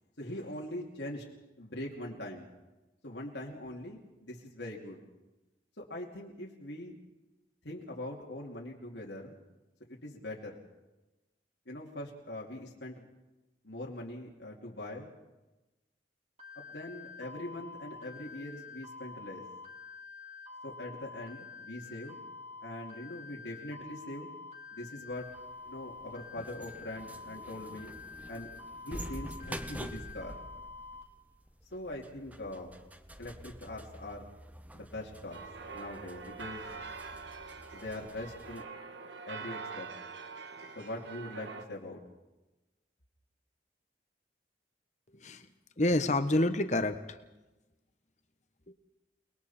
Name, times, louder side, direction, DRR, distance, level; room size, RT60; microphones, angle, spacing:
voice 1, 0.2-1.2 1.6-2.5 3.0-5.0 5.8-7.0 7.6-9.4 9.9-10.6 11.7-13.1 13.6-15.1 16.5-19.4 20.6-22.2 22.6-24.3 24.7-25.3 25.6-27.9 28.3-28.5 28.8-30.4 31.7-32.7 33.2-34.2 34.7-35.4 35.7-36.7 37.7-38.6 39.3-39.9 40.7-42.0, left 1 dB, 85° left, -3 dB, 2.7 m, -42 dB
sound 1, 16.4-31.0, left 4 dB, 40° right, 3.4 m, -48 dB
sound 2, 25.1-38.6, right 1 dB, 10° right, 0.9 m, -48 dB
FX - campanada gorda, 35.3-41.6, right 5 dB, 85° right, 1.6 m, -44 dB
voice 2, 45.8-47.2, left 1 dB, 40° left, 9 dB, 1.2 m, -28 dB
29.5 x 21.0 x 4.4 m, 1.1 s
head